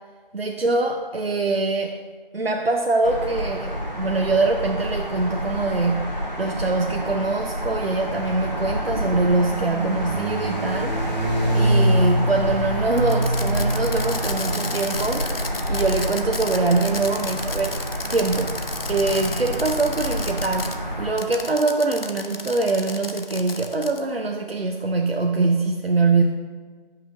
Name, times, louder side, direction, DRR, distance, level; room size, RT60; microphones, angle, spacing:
voice 1, 0.3-1.9 2.3-11.2 11.5-15.3 15.7-17.8 18.1-18.5 18.9-26.2, right 3 dB, 90° right, 2 dB, 0.7 m, -23 dB
sound 1, 3.0-21.1, equal, 45° right, 1.6 m, -26 dB
Fireworks, 12.9-20.8 21.2-24.0, left 3 dB, 80° left, 0.7 m, -33 dB
12.5 x 5.7 x 2.6 m, 1.5 s
figure-of-eight pair, 180°, 29 cm